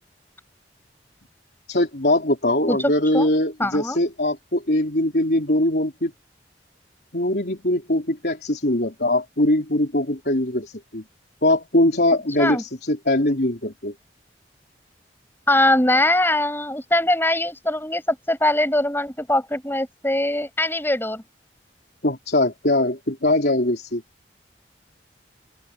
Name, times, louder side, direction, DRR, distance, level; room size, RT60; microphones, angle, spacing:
voice 1, 1.7-6.1 7.1-11.0 11.4-13.9 22.0-24.0, left 1 dB, 65° left, 3.7 m, -21 dB
voice 2, 2.7-3.3 3.6-4.0 12.4-12.6 15.5-21.2, left 1 dB, 15° left, 6.0 m, -22 dB
open air
head